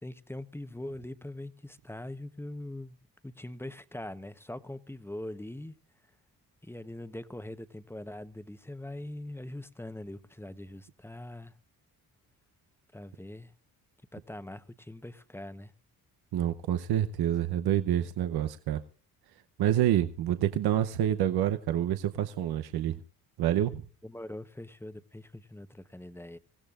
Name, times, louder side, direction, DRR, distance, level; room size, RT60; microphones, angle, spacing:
voice 1, 0.0-3.0 3.2-5.8 6.6-11.6 12.9-13.5 14.1-15.7 24.0-26.4, left 1 dB, 5° left, 0.9 m, -42 dB
voice 2, 16.3-18.8 19.6-23.0 23.4-23.8, right 11 dB, 85° right, 0.9 m, -27 dB
26.0 x 16.0 x 2.5 m
cardioid pair, 95°, 37 cm